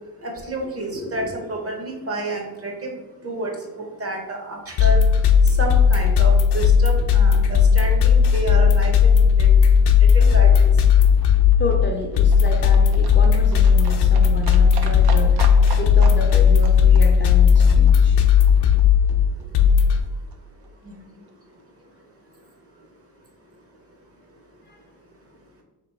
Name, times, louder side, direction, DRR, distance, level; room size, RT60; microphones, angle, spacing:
voice 1, 0.2-2.9 3.2-3.5 3.8-5.0 5.6-8.9 9.4-9.5 10.1-10.6, right 2 dB, 35° right, 2 dB, 0.8 m, -29 dB
voice 2, 0.9-1.3 11.6-15.4 15.8-18.2 24.7-24.8, left 2 dB, 30° left, 2 dB, 0.5 m, -30 dB
sound 1, 4.8-20.0, left 7 dB, 85° left, 0.6 m, -15 dB
Livestock farm animals working animals, 10.6-18.8 19.1-19.2 19.4-19.5 19.7-19.8 20.0-20.1 20.3-20.4 20.6-20.7 21.0-21.1 21.3-21.4, right 5 dB, 75° right, 0.6 m, -38 dB
3.2 x 2.9 x 4.6 m, 1.1 s
wide cardioid pair, 145°, 39 cm